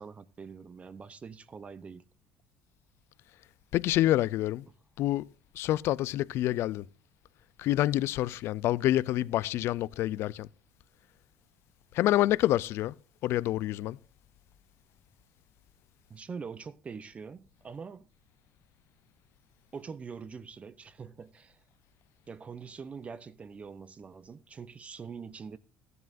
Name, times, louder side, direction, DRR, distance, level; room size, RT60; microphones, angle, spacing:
voice 1, 0.0-2.0 4.0-4.1 16.1-18.1 19.7-21.6 22.3-25.6, right 5 dB, 25° right, 0.6 m, -44 dB
voice 2, 3.7-4.6 5.0-5.3 5.6-6.9 7.6-10.5 11.9-12.9 13.2-14.0, left 14 dB, 60° left, 0.4 m, -27 dB
14.0 x 11.0 x 2.5 m
cardioid pair, 115°, 5 cm